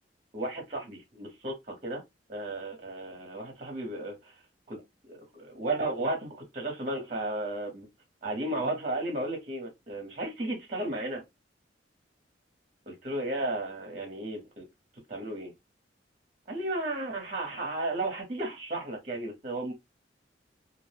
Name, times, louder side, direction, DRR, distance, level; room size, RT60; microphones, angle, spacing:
voice 1, 0.3-2.0 2.3-4.3 4.7-7.9 8.2-11.2 12.9-14.7 15.1-15.5 16.5-19.7, right 2 dB, 40° right, 0.7 m, -34 dB
2.5 x 2.0 x 3.2 m
head